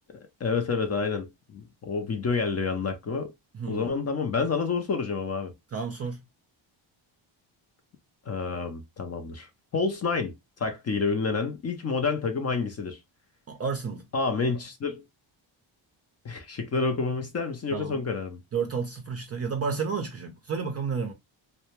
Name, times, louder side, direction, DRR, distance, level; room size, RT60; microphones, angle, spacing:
voice 1, 0.4-3.3 3.7-5.5 8.3-10.3 10.6-13.0 14.1-15.0 16.2-18.4, left 4 dB, 35° left, 0.4 m, -29 dB
voice 2, 3.5-3.9 5.7-6.2 13.5-14.1 17.7-18.0 18.5-21.1, right 5 dB, 35° right, 0.4 m, -31 dB
2.2 x 2.1 x 2.8 m
cardioid pair, 105°, 47 cm